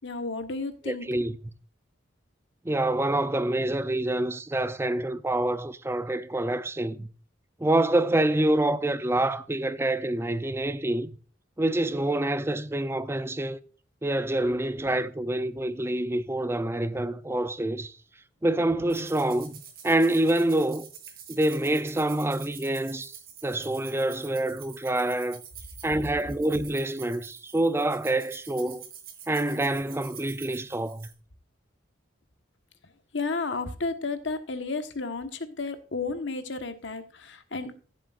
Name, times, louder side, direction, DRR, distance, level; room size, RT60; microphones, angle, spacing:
voice 1, 0.0-1.1 33.1-37.8, left 3 dB, 70° left, 1.3 m, -32 dB
voice 2, 0.8-1.3 2.6-7.1 7.6-11.1 11.6-13.6 14.0-18.0 18.4-20.9 21.3-23.1 23.4-25.4 25.8-28.8 29.3-31.1, right 1 dB, 15° right, 0.5 m, -26 dB
sound 1, 18.9-31.1, right 8 dB, 50° right, 2.9 m, -47 dB
15.0 x 7.6 x 2.5 m
head